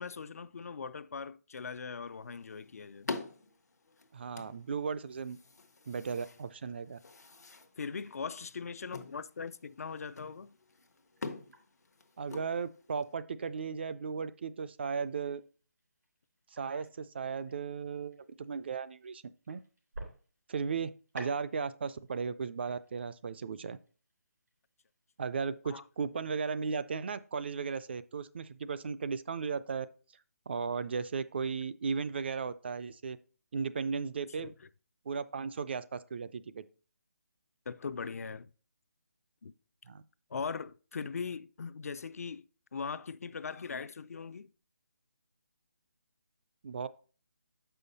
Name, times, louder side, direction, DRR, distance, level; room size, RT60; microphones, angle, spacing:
voice 1, 0.0-3.1 7.8-10.6 25.7-25.8 34.4-34.5 37.7-38.5 39.4-39.5 40.3-44.5, left 5 dB, 65° left, 0.4 m, -40 dB
sound 1, 2.0-13.1, left 3 dB, 85° left, 0.9 m, -47 dB
voice 2, 4.1-5.4 5.9-7.0 12.2-15.4 16.5-19.6 20.5-23.8 25.2-29.9 30.5-33.2 33.5-34.5 35.1-36.6 39.9-40.0 46.6-46.9, right 5 dB, 40° right, 0.3 m, -36 dB
sound 2, 7.7-27.5, right 2 dB, 90° right, 3.6 m, -56 dB
6.5 x 5.6 x 4.0 m
hypercardioid pair, 165°, 9 cm